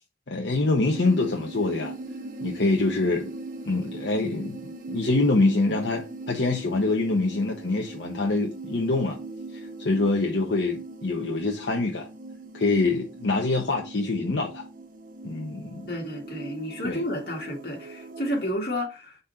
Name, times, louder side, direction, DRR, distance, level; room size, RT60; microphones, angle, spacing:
voice 1, 0.3-1.9 2.4-3.3 3.6-4.6 4.9-9.2 9.8-12.1 12.5-14.7 15.2-15.9 16.8-17.0, left 3 dB, 80° left, 0.9 m, -25 dB
sound 1, 0.8-18.5, right 2 dB, 45° right, 0.8 m, -40 dB
voice 2, 15.9-19.2, left 1 dB, 55° left, 2.0 m, -31 dB
5.0 x 4.1 x 5.6 m
head